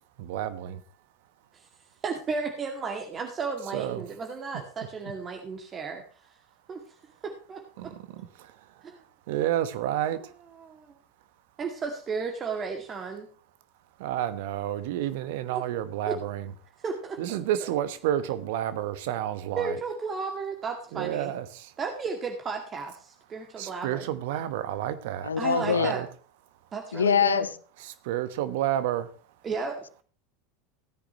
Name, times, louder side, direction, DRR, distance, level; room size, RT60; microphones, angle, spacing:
voice 1, 0.2-0.8 3.7-4.1 7.8-10.3 14.0-16.5 17.2-19.8 20.9-21.7 23.6-26.1 27.8-29.1, right 12 dB, 65° right, 1.1 m, -31 dB
voice 2, 2.0-6.1 6.7-6.8 7.2-8.2 8.8-9.0 10.6-11.0 11.6-13.3 15.5-15.6 16.1-16.2 16.8-17.4 19.6-21.3 21.8-24.1 25.4-26.0 26.7-27.5 29.4-29.8, right 5 dB, 30° right, 2.2 m, -34 dB
voice 3, 25.2-25.9 26.9-27.5, left 7 dB, 85° left, 0.6 m, -23 dB
16.5 x 10.0 x 3.0 m
hypercardioid pair, 85°, 0 cm